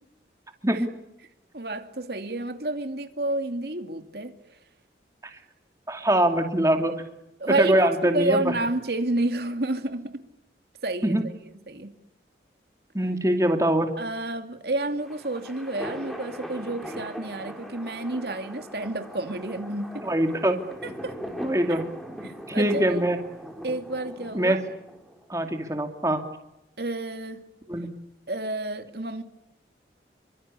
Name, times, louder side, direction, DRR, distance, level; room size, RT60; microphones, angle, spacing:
voice 1, 1.5-4.4 7.4-10.2 10.8-11.2 11.7-11.9 14.0-20.1 20.8-21.1 21.7-21.8 22.2-23.0 23.6-24.6 26.8-27.4 28.3-29.2, right 2 dB, 65° right, 7 dB, 2.6 m, -30 dB
voice 2, 5.9-6.9 7.5-8.5 11.0-11.3 12.9-13.9 20.0-20.6 21.4-21.8 22.5-23.2 24.3-24.6 25.3-26.2 27.7-27.9, right 1 dB, 15° right, 5 dB, 2.5 m, -23 dB
sound 1, 14.8-25.2, equal, ahead, 4.1 m, -40 dB
28.5 x 24.5 x 8.4 m, 0.88 s
head